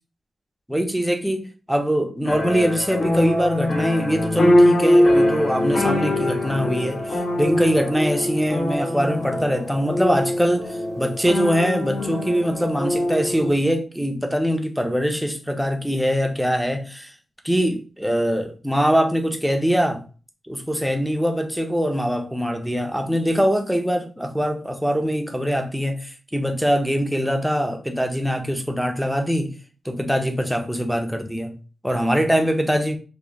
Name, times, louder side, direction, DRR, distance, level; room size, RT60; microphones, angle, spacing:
voice 1, 0.7-17.1 17.4-20.0 20.5-29.5 29.8-31.5 31.8-33.0, equal, ahead, 0.6 m, -23 dB
sound 1, 2.2-13.5, left 1 dB, 45° left, 0.7 m, -22 dB
3.1 x 2.2 x 3.7 m
wide cardioid pair, 115°, 0 cm